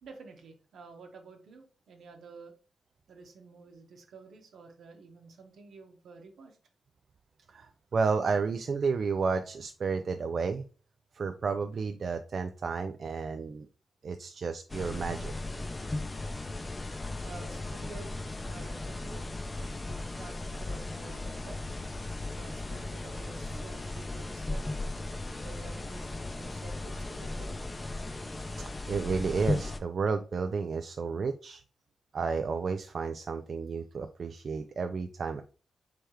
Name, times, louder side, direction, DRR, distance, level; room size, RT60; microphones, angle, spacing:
voice 1, 0.0-2.5 3.1-6.6 17.2-19.4 19.8-21.6 22.4-24.8 25.4-27.7 28.8-28.9, right 4 dB, 80° right, 4 dB, 1.0 m, -50 dB
voice 2, 7.5-10.7 11.1-13.7 14.0-15.3 28.5-31.6 32.1-35.4, right 5 dB, 60° right, 8 dB, 0.3 m, -32 dB
sound 1, 14.7-29.8, left 2 dB, 25° left, 0.5 m, -36 dB
3.4 x 3.2 x 4.6 m, 0.38 s
cardioid pair, 75°, 0 cm